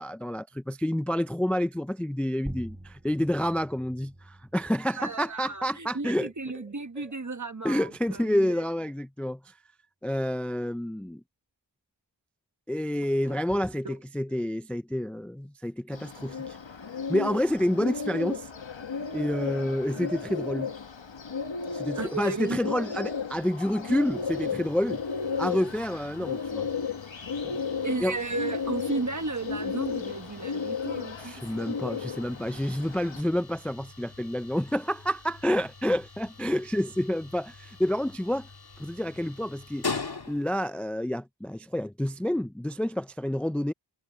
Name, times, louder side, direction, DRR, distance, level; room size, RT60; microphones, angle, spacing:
voice 1, 0.0-6.3 7.6-9.5 10.0-11.2 12.7-16.6 17.1-18.5 19.1-20.7 21.7-25.0 25.4-26.7 27.4-27.6 28.0-28.2 31.2-38.5 38.8-39.9 40.3-43.7, equal, 5° left, 0.4 m, -29 dB
sound 1, 2.5-7.5, right 1 dB, 15° right, 1.5 m, -47 dB
voice 2, 4.9-8.6 13.2-13.4 13.8-14.0 21.9-22.6 27.8-31.5, right 3 dB, 40° right, 1.3 m, -34 dB
Bird, 15.9-33.2, left 5 dB, 85° left, 1.2 m, -34 dB
sound 2, 23.9-40.7, left 4 dB, 60° left, 1.8 m, -43 dB
wide cardioid pair, 55°, 44 cm